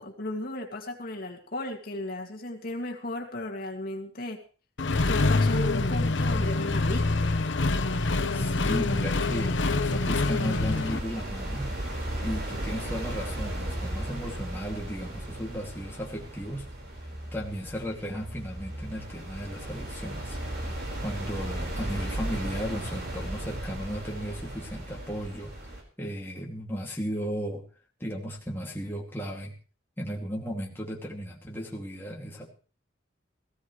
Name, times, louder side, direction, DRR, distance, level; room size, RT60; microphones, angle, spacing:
voice 1, 0.0-4.4 5.1-7.3, left 1 dB, 50° left, 1 dB, 2.3 m, -35 dB
Accelerating revving vroom, 4.8-11.0, left 3 dB, 85° left, 1.0 m, -25 dB
sound 1, 6.4-25.8, right 1 dB, 60° right, 4.7 m, -37 dB
voice 2, 8.0-11.7 12.2-16.7 17.3-20.4 21.0-25.5 26.0-27.6 28.0-29.5 30.0-32.5, equal, 10° left, -2 dB, 2.3 m, -35 dB
sound 2, 11.2-22.8, equal, 80° right, 3.0 m, -44 dB
18.0 x 16.0 x 3.2 m, 0.38 s
head